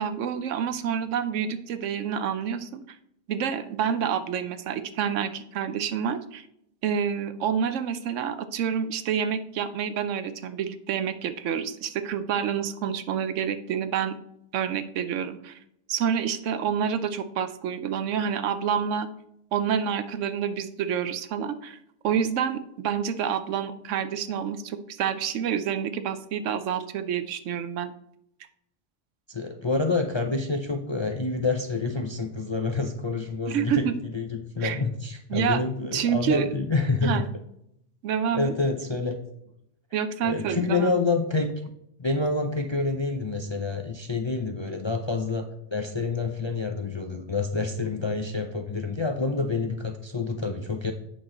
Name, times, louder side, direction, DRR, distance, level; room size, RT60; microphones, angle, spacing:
voice 1, 0.0-2.8 3.3-6.5 6.8-14.2 14.5-15.6 15.9-19.1 19.5-21.8 22.0-27.9 33.5-33.9 34.6-34.8 35.3-35.6 35.9-36.5 37.0-37.2 38.0-38.5 39.9-40.9, right 8 dB, 80° right, 11 dB, 1.0 m, -28 dB
voice 2, 29.3-37.2 38.3-39.2 40.2-41.5 42.0-50.9, left 3 dB, 35° left, 4 dB, 0.4 m, -28 dB
8.2 x 6.1 x 3.8 m, 0.77 s
omnidirectional pair, 1.3 m